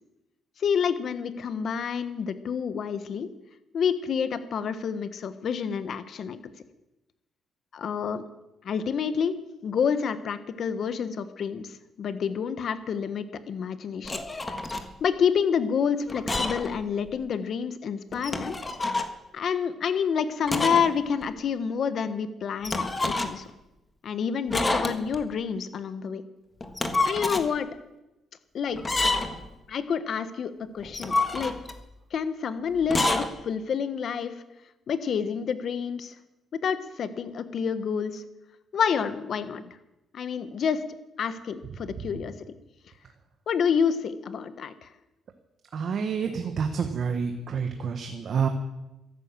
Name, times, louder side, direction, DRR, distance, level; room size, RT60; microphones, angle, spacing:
voice 1, 0.6-3.3 3.7-6.4 7.7-8.2 8.6-14.2 15.0-18.6 18.9-19.0 19.3-23.5 24.0-26.2 27.0-27.7 28.5-28.8 29.7-31.5 32.1-34.4 34.9-36.1 36.5-38.2 38.7-39.8 40.1-40.8 41.2-42.3 43.5-44.9, left 7 dB, 60° left, 12 dB, 1.3 m, -28 dB
sound 1, 14.0-14.9 16.1-16.8 17.1-17.2 18.1-19.1 20.5-20.9 21.2-21.3 22.6-23.5 24.5-25.2 26.6-27.5 28.8-29.5 30.8-31.8 32.8-33.3, left 2 dB, 25° left, 1.5 m, -28 dB
voice 2, 45.7-48.5, right 6 dB, 55° right, 6 dB, 1.3 m, -28 dB
13.5 x 11.5 x 7.5 m, 0.97 s
cardioid pair, 90°, 0 cm